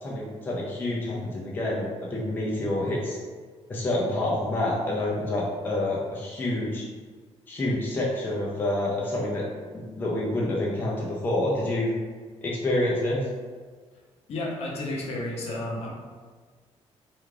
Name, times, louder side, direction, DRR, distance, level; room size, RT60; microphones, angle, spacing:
voice 1, 0.0-3.2 3.7-6.8 7.5-9.5 9.7-11.9 12.4-13.3, left 1 dB, 20° left, -5 dB, 0.3 m, -28 dB
voice 2, 14.3-15.9, left 1 dB, 65° left, -3 dB, 0.6 m, -32 dB
2.4 x 2.2 x 3.1 m, 1.5 s
wide cardioid pair, 180°, 11 cm